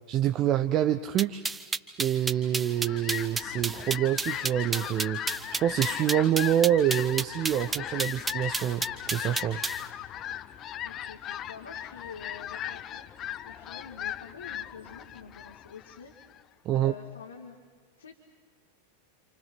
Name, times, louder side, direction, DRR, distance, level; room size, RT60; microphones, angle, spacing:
voice 1, 0.1-1.4 2.0-9.6 16.6-16.9, right 11 dB, 35° right, 8 dB, 0.7 m, -27 dB
sound 1, 1.2-9.8, right 4 dB, 10° right, 1.0 m, -31 dB
Fowl, 2.5-16.4, left 11 dB, 30° left, 0.7 m, -38 dB
voice 2, 10.8-16.1 16.7-17.6 18.0-18.2, left 5 dB, 70° left, 1 dB, 1.9 m, -47 dB
28.0 x 28.0 x 6.1 m, 1.4 s
figure-of-eight pair, 90°, 0 cm